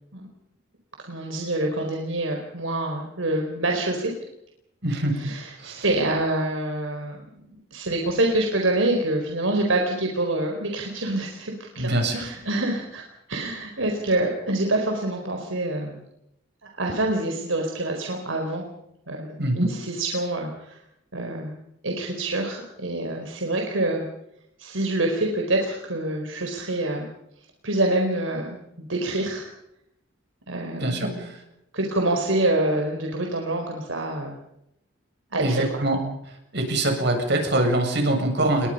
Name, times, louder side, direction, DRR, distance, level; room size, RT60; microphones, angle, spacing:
voice 1, 1.1-4.1 5.1-7.3 7.7-13.0 13.3-16.0 16.6-18.7 19.1-20.8 21.1-24.1 24.6-27.1 27.6-29.4 30.5-31.3 31.7-34.4 35.3-35.7, right 2 dB, 85° right, 2 dB, 4.5 m, -26 dB
voice 2, 4.8-5.2 5.6-5.9 11.8-12.3 19.4-19.7 30.8-31.4 35.4-36.0 36.5-38.7, right 1 dB, 60° right, 4 dB, 7.5 m, -24 dB
30.0 x 22.0 x 5.6 m, 0.81 s
head